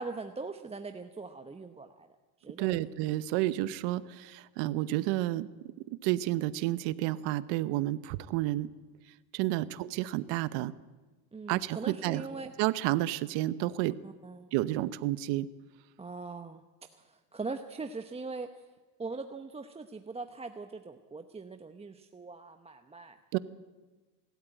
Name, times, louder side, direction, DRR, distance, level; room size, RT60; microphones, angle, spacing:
voice 1, 0.0-2.1 2.4-2.9 9.5-9.7 11.3-12.5 14.0-14.5 16.0-16.6 16.9-18.7 19.0-23.2, right 3 dB, 15° right, 7 dB, 0.9 m, -41 dB
voice 2, 2.6-5.5 5.8-8.7 9.3-10.7 11.5-12.2 12.6-14.0 14.5-15.5 23.3-23.4, right 16 dB, 75° right, 16 dB, 0.9 m, -30 dB
24.0 x 13.0 x 9.1 m, 1.3 s
supercardioid pair, 115°, 44 cm